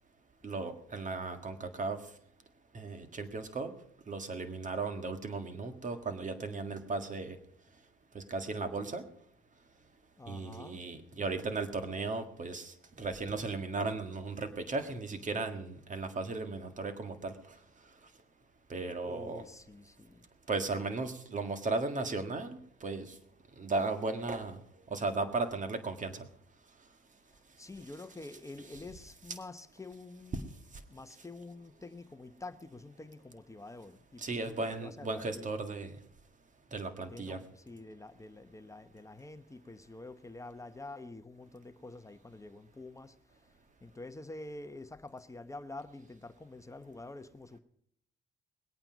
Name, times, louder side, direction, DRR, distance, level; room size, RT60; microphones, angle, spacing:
voice 1, 0.4-2.0 2.7-3.7 4.1-7.4 8.1-9.0 10.3-17.6 18.7-19.4 20.5-23.2 23.6-24.6 24.9-26.3 30.3-30.4 34.2-36.0 36.7-37.4, right 3 dB, 40° right, 1.8 m, -36 dB
voice 2, 10.2-10.9 19.0-20.2 27.6-30.5 30.9-35.5 37.1-43.4 43.8-47.6, left 2 dB, 15° left, 0.9 m, -47 dB
21.0 x 8.8 x 5.2 m
cardioid pair, 90°, 20 cm